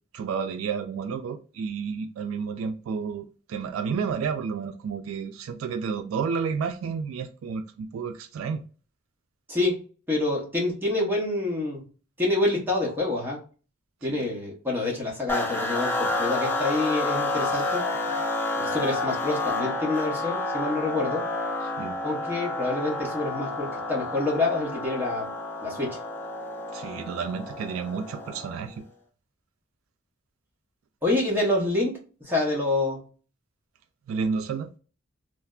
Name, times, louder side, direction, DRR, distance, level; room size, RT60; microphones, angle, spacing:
voice 1, 0.1-8.6 21.8-22.0 26.7-28.7 34.1-34.7, right 6 dB, 75° right, 0.3 m, -31 dB
voice 2, 9.5-9.8 10.1-11.8 12.2-13.4 14.0-17.8 18.6-21.3 22.0-25.3 25.6-26.0 31.0-33.0, left 2 dB, 10° right, 0.9 m, -27 dB
sound 1, 15.3-28.7, left 2 dB, 10° left, 0.4 m, -30 dB
3.2 x 2.0 x 2.3 m
head